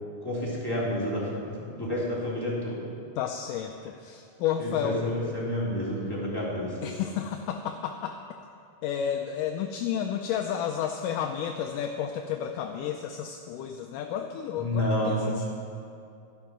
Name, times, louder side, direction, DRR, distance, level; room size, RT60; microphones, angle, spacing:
voice 1, 0.2-2.9 4.6-6.9 14.6-15.5, left 1 dB, 5° left, -8 dB, 3.0 m, -30 dB
voice 2, 3.2-5.0 6.8-8.2 8.8-15.4, left 9 dB, 80° left, 5 dB, 2.0 m, -31 dB
12.5 x 11.5 x 6.0 m, 2.5 s
omnidirectional pair, 4.0 m